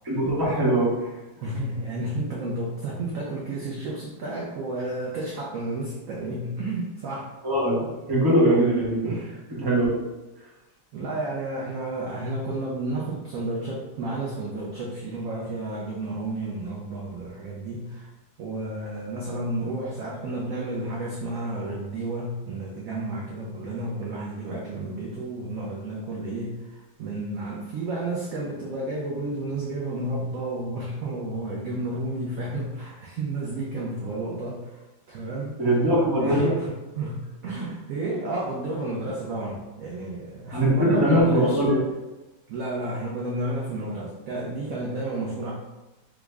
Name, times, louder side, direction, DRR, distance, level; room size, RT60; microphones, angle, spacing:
voice 1, 0.0-1.1 7.4-7.7 8.1-9.2 9.6-10.0 35.6-36.5 40.5-41.8, right 1 dB, 25° right, -7 dB, 0.5 m, -21 dB
voice 2, 1.4-7.3 9.1-9.4 10.9-18.1 18.4-35.5 36.2-41.6 42.5-45.5, right 2 dB, 75° right, -4 dB, 0.7 m, -31 dB
3.5 x 2.0 x 3.4 m, 1.1 s
omnidirectional pair, 2.0 m